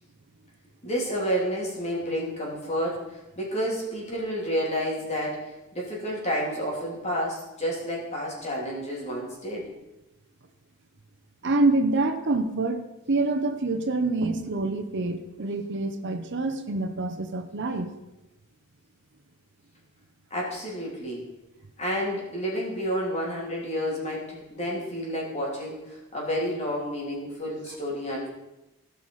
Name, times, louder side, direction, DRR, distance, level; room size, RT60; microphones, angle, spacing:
voice 1, 0.8-9.7 20.3-21.2 21.8-28.3, equal, 30° left, -3 dB, 3.4 m, -30 dB
voice 2, 11.4-17.9, right 2 dB, 55° right, 8 dB, 0.8 m, -26 dB
17.0 x 5.7 x 4.8 m, 0.98 s
head